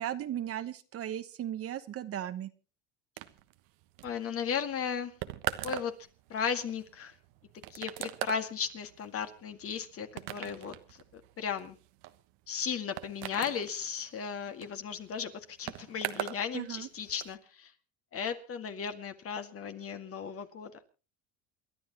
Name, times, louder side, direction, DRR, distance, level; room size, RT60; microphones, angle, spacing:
voice 1, 0.0-2.5 16.5-16.9, right 11 dB, 40° right, 11 dB, 1.1 m, -36 dB
sound 1, 3.2-16.4 16.7-17.3, right 16 dB, 75° right, 1.2 m, -41 dB
voice 2, 4.0-5.1 5.6-5.9 6.3-7.1 7.7-11.0 11.4-11.8 12.5-17.7 18.1-20.7, left 7 dB, 40° left, 7 dB, 2.1 m, -36 dB
28.5 x 11.5 x 3.0 m, 0.33 s
supercardioid pair, 105°, 34 cm